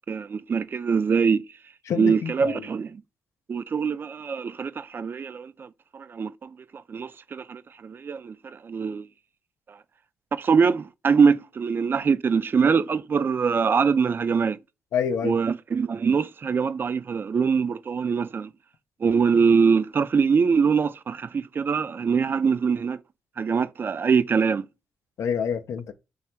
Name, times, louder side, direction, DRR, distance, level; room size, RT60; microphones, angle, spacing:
voice 1, 0.1-1.4 1.9-3.0 3.5-9.1 9.7-9.8 10.3-14.6 15.2-18.5 19.0-23.0 23.4-24.7, right 5 dB, 45° right, 0.3 m, -23 dB
voice 2, 1.9-2.6 14.9-15.4 25.2-25.9, left 7 dB, 75° left, 0.4 m, -27 dB
3.3 x 2.3 x 4.3 m
cardioid pair, 65°, 5 cm